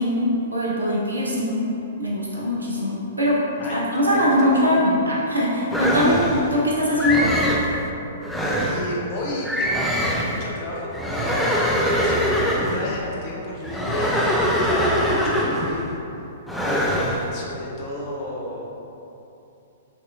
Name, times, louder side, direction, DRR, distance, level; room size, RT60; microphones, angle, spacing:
voice 1, 0.0-1.7 2.0-3.4 3.7-6.2 6.5-7.4, equal, 85° right, -5 dB, 1.0 m, -21 dB
voice 2, 4.1-4.7 8.6-9.9 10.2-15.9 16.6-18.7, left 1 dB, 40° left, -3 dB, 0.9 m, -32 dB
sound 1, 5.7-6.5 7.0-7.7 8.2-8.9 9.4-10.4 10.9-12.9 13.6-15.8 16.5-17.3, equal, 5° left, 0.5 m, -23 dB
5.9 x 2.8 x 2.7 m, 2.9 s
figure-of-eight pair, 110°, 0 cm